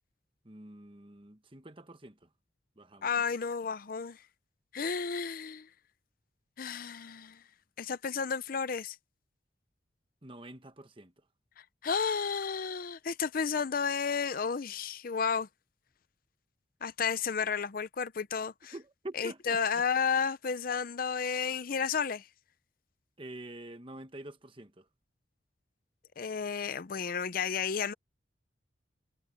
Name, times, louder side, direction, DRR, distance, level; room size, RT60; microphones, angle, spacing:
voice 1, 0.4-2.3 2.8-3.1 10.2-11.1 18.7-19.8 23.2-24.9, right 1 dB, 30° right, 1.3 m, -46 dB
voice 2, 3.0-4.2 4.7-5.7 6.6-7.4 7.8-9.0 11.8-15.5 16.8-18.7 19.2-22.3 26.2-27.9, left 6 dB, 50° left, 0.5 m, -32 dB
head